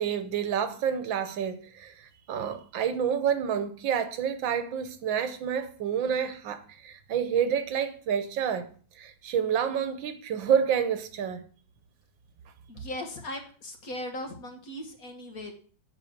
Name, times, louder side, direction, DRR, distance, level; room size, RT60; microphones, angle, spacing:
voice 1, 0.0-8.7 9.0-11.4, right 8 dB, 75° right, 1.6 m, -29 dB
voice 2, 12.7-15.5, left 1 dB, 50° left, 1.8 m, -38 dB
8.2 x 5.2 x 7.2 m
omnidirectional pair, 2.2 m